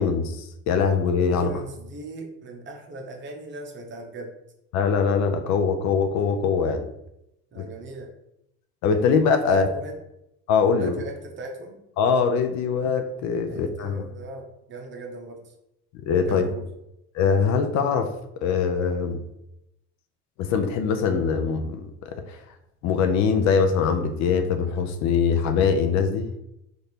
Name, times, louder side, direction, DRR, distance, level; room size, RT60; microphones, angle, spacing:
voice 1, 0.0-1.6 4.7-6.8 7.6-7.7 8.8-9.7 10.5-11.0 12.0-14.1 16.1-16.5 17.1-18.1 18.4-19.2 20.4-21.8 22.3-22.4 22.8-26.3, left 6 dB, 55° left, 7 dB, 0.5 m, -22 dB
voice 2, 1.3-4.3 7.5-8.1 9.5-10.0 10.7-11.8 13.5-15.5 16.3-16.6, right 2 dB, 35° right, 2 dB, 0.8 m, -38 dB
3.2 x 2.6 x 4.3 m, 0.83 s
supercardioid pair, 115°, 35 cm